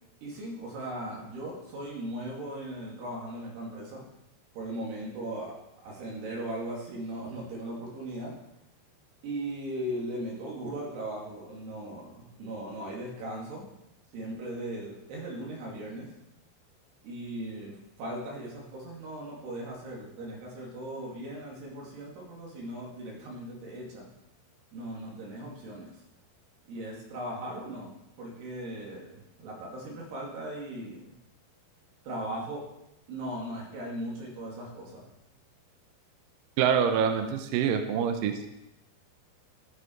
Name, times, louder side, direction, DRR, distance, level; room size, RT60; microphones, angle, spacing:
voice 1, 0.2-4.0 4.5-5.5 5.8-8.3 9.2-13.7 14.1-16.1 17.0-24.1 24.7-26.0 26.7-31.1 32.0-32.6 33.1-35.1, right 1 dB, 65° right, -3 dB, 4.4 m, -38 dB
voice 2, 36.6-38.5, right 7 dB, 85° right, 6 dB, 1.9 m, -26 dB
13.5 x 6.7 x 4.6 m, 0.87 s
omnidirectional pair, 5.2 m